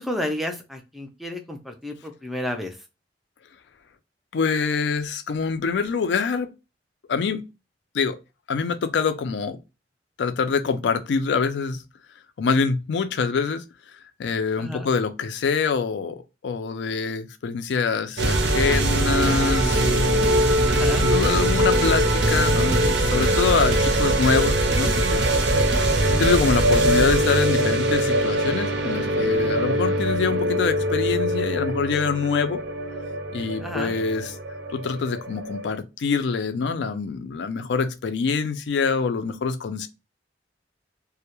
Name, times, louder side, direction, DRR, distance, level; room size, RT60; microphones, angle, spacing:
voice 1, 0.0-2.8 14.6-14.9 20.6-21.1 33.6-34.0, left 1 dB, ahead, 0.4 m, -31 dB
voice 2, 4.3-6.5 7.1-7.5 7.9-8.2 8.5-9.6 10.2-11.8 12.4-13.6 14.2-20.4 21.0-25.5 26.1-32.6 33.3-34.3 34.7-39.9, left 5 dB, 70° left, 0.4 m, -25 dB
sound 1, 18.2-35.8, right 1 dB, 65° right, 0.5 m, -22 dB
2.2 x 2.0 x 2.8 m
head